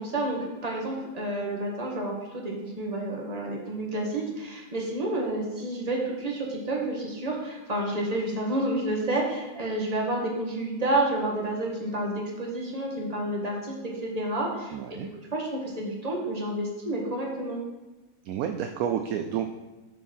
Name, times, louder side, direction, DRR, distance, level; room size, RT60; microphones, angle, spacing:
voice 1, 0.0-13.7 14.0-17.6, right 1 dB, 25° right, -2 dB, 1.6 m, -30 dB
voice 2, 14.7-15.1 18.2-19.5, right 9 dB, 70° right, 6 dB, 0.9 m, -30 dB
6.9 x 6.5 x 4.4 m, 1.1 s
omnidirectional pair, 1.7 m